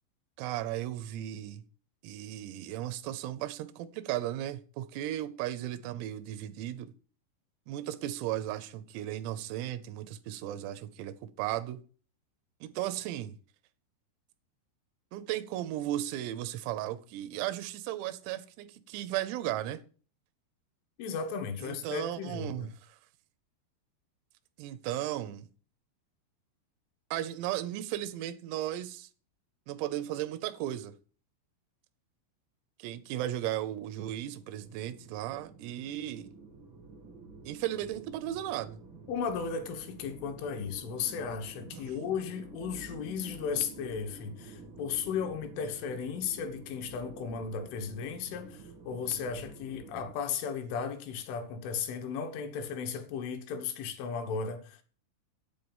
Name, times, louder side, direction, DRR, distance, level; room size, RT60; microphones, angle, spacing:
voice 1, 0.4-1.6 2.0-6.9 7.7-11.8 12.6-13.4 15.1-19.8 21.6-23.0 24.6-25.5 27.1-29.1 29.7-31.0 32.8-36.3 37.5-38.8 41.7-42.0, right 13 dB, 90° right, 3.6 m, -35 dB
voice 2, 21.0-22.7 39.1-54.8, left 6 dB, 75° left, 3.7 m, -35 dB
sound 1, 33.0-50.1, right 4 dB, 70° right, 1.1 m, -50 dB
9.4 x 8.5 x 7.2 m
omnidirectional pair, 5.9 m